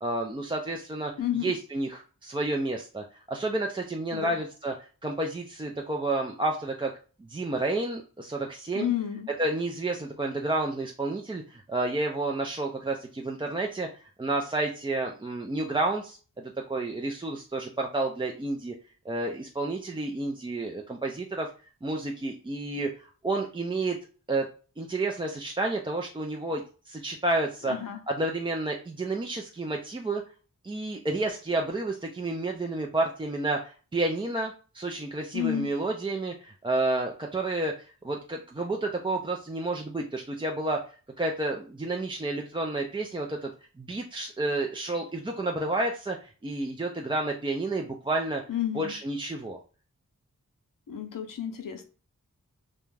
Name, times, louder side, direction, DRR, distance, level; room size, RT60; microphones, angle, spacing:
voice 1, 0.0-1.1 1.4-4.7 5.0-6.9 7.3-8.9 9.4-13.9 14.2-16.2 16.7-18.7 19.1-21.5 21.8-24.0 24.3-24.5 24.8-27.8 28.1-30.2 30.6-40.8 41.2-43.5 43.8-48.4 48.7-49.6, right 2 dB, 15° right, 0 dB, 0.3 m, -30 dB
voice 2, 1.2-1.5 4.1-4.4 8.7-9.3 27.6-28.0 35.3-35.7 48.5-49.0 50.9-51.8, left 10 dB, 75° left, 5 dB, 0.6 m, -31 dB
2.4 x 2.2 x 3.1 m, 0.37 s
cardioid pair, 40°, 34 cm